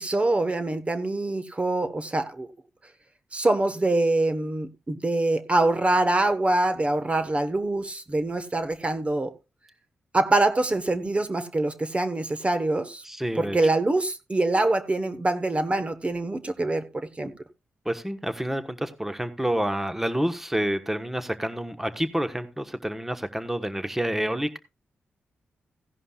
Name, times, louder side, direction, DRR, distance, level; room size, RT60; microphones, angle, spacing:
voice 1, 0.0-2.5 3.3-9.3 10.1-13.0 13.4-17.3, right 2 dB, 30° right, 1.2 m, -24 dB
voice 2, 13.0-13.6 17.8-24.6, right 1 dB, 5° right, 1.2 m, -28 dB
16.5 x 11.0 x 2.4 m
cardioid pair, 65°, 4 cm